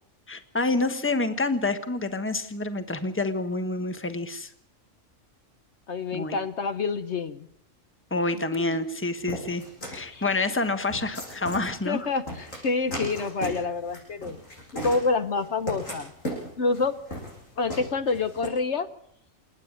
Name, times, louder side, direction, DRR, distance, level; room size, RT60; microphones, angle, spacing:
voice 1, 0.3-4.5 6.1-6.4 8.1-9.6 9.9-12.1, left 2 dB, 10° left, 9 dB, 1.3 m, -28 dB
voice 2, 5.9-7.5 8.5-8.6 10.1-10.2 11.9-14.4 14.8-16.1 16.6-17.0 17.6-18.9, left 4 dB, 60° left, 10 dB, 1.2 m, -27 dB
sound 1, 9.3-18.5, equal, 80° left, 7.7 m, -37 dB
28.5 x 9.8 x 9.5 m, 0.72 s
omnidirectional pair, 1.4 m